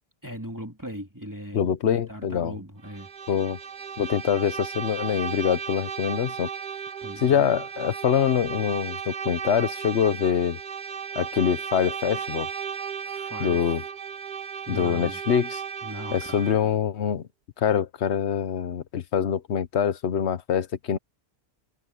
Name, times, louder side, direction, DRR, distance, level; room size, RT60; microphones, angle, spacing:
voice 1, 0.2-3.1 7.0-7.5 13.0-13.7 14.7-15.2 15.8-16.7, equal, 15° right, 2.8 m, -39 dB
voice 2, 1.5-2.5 3.3-3.6 4.0-6.5 7.2-10.6 11.2-12.5 13.4-13.8 14.7-15.6 16.1-17.3 17.6-21.0, left 8 dB, 85° left, 1.2 m, -24 dB
Bowed string instrument, 2.8-16.7, right 7 dB, 50° right, 0.9 m, -35 dB
omnidirectional pair, 1.1 m